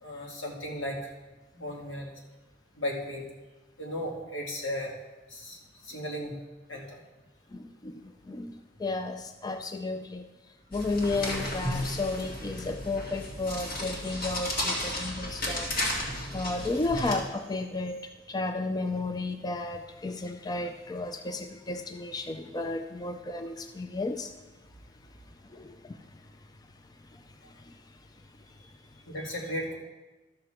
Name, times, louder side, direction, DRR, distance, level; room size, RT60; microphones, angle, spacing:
voice 1, 0.0-1.0 1.5-2.1 2.8-3.3 3.8-4.9 5.3-6.3 6.7-7.0 29.1-29.8, left 1 dB, 85° left, -2 dB, 2.2 m, -35 dB
voice 2, 7.5-8.5 8.8-10.2 10.7-15.7 16.3-18.0 18.3-24.3 25.6-25.9, left 2 dB, 20° left, 7 dB, 0.4 m, -33 dB
sound 1, 10.7-17.1, left 1 dB, 50° left, 2.2 m, -33 dB
12.5 x 6.7 x 4.4 m, 1.1 s
head